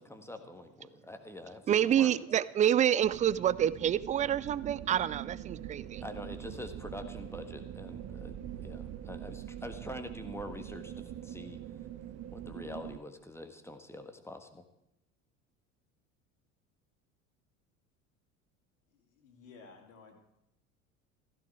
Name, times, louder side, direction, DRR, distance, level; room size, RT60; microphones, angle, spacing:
voice 1, 0.0-2.2 6.0-11.6 12.3-14.6, left 1 dB, 5° left, 7 dB, 1.6 m, -45 dB
voice 2, 1.7-6.0, right 10 dB, 20° right, 19 dB, 0.4 m, -27 dB
sound 1, 3.0-13.0, right 11 dB, 40° right, 1.0 m, -43 dB
voice 3, 18.9-20.2, left 4 dB, 70° left, 2 dB, 3.1 m, -55 dB
15.5 x 14.5 x 4.8 m, 0.83 s
figure-of-eight pair, 65°, 40 cm